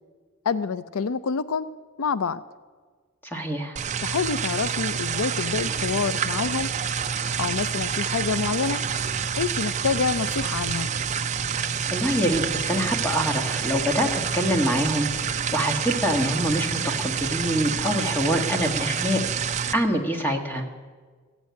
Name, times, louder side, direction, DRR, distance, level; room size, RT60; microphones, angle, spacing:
voice 1, 0.5-1.7 2.0-2.4 4.0-6.7 7.4-8.8 9.4-10.9, left 5 dB, 85° left, 15 dB, 0.5 m, -27 dB
voice 2, 3.2-3.8 11.5-15.1 15.5-19.2 19.7-20.7, equal, 10° left, 4 dB, 1.5 m, -25 dB
sound 1, 3.8-19.7, right 6 dB, 35° right, 0.6 m, -28 dB
14.5 x 8.1 x 9.4 m, 1.5 s
head